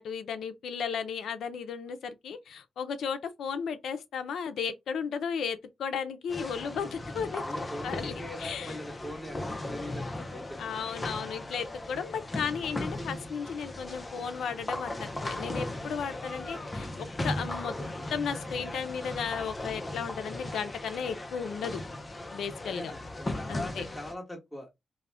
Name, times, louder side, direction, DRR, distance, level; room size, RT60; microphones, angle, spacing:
voice 1, 0.0-7.4 7.8-8.8 10.6-17.8 18.1-21.8 22.3-22.9 23.5-23.9, left 6 dB, 85° left, 0.4 m, -35 dB
sound 1, 6.3-24.1, left 1 dB, 25° left, 0.4 m, -37 dB
voice 2, 7.4-10.7 22.7-24.7, left 1 dB, 5° left, 1.1 m, -41 dB
2.4 x 2.1 x 3.2 m
cardioid pair, 100°, 0 cm